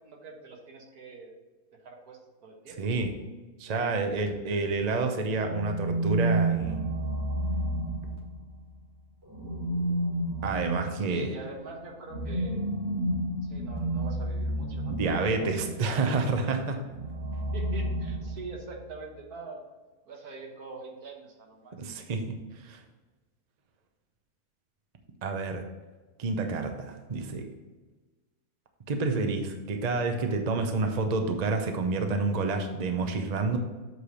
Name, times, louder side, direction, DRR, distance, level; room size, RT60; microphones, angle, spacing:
voice 1, 0.0-1.4 1.8-2.9 11.1-12.7 13.5-16.2 17.5-19.6 20.1-21.7, right 4 dB, 75° right, 0 dB, 1.7 m, -44 dB
voice 2, 2.8-3.1 3.6-6.9 10.4-11.3 14.9-16.9 21.8-22.8 25.2-25.6 26.2-27.5 28.9-33.6, right 3 dB, 40° right, 5 dB, 0.6 m, -29 dB
sound 1, 5.3-8.6 9.3-15.9 16.9-18.8, right 1 dB, 15° right, 1.6 m, -31 dB
7.9 x 3.3 x 6.1 m, 1.2 s
omnidirectional pair, 1.6 m